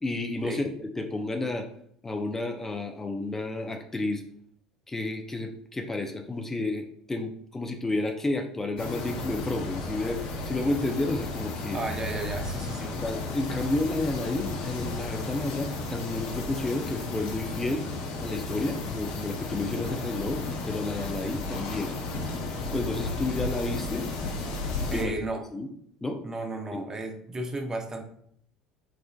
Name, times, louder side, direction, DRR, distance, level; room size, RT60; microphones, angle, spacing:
voice 1, 0.0-1.7 2.0-4.2 4.9-11.8 12.9-17.9 18.2-21.9 22.3-22.4 22.7-24.1 24.8-25.2 25.5-25.7 26.0-26.2 26.7-26.8, left 2 dB, 15° left, 4 dB, 0.5 m, -31 dB
sound 1, 8.8-25.0, left 3 dB, 60° left, 0.7 m, -34 dB
voice 2, 11.7-13.0 24.9-25.4 26.2-28.0, right 2 dB, 25° right, 5 dB, 0.6 m, -34 dB
4.9 x 2.4 x 2.3 m, 0.66 s
hypercardioid pair, 65°, 2 cm